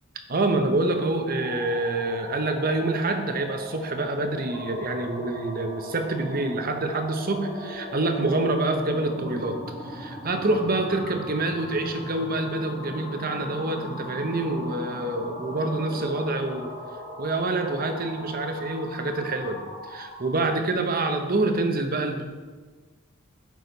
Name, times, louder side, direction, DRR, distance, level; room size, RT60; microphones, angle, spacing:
voice 1, 0.3-9.6 9.8-16.7 17.2-19.6 19.9-22.2, right 2 dB, 45° right, 6 dB, 0.8 m, -26 dB
sound 1, 1.2-20.5, left 1 dB, 20° left, 2.7 m, -39 dB
9.4 x 6.3 x 4.0 m, 1.4 s
head